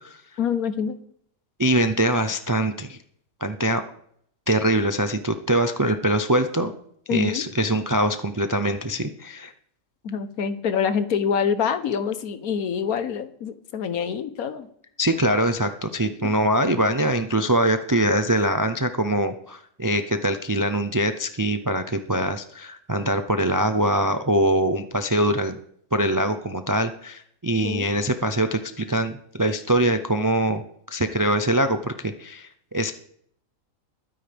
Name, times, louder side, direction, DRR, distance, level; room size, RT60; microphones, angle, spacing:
voice 1, 0.4-1.0 7.1-7.5 10.0-14.7 16.2-16.3 16.6-16.8 27.6-28.0, left 7 dB, 85° left, 11 dB, 1.5 m, -26 dB
voice 2, 1.6-3.0 3.4-3.8 4.5-6.7 7.1-9.5 15.0-25.6 25.9-32.9, right 1 dB, 35° right, 8 dB, 0.3 m, -23 dB
21.5 x 9.5 x 3.5 m, 0.67 s
omnidirectional pair, 1.5 m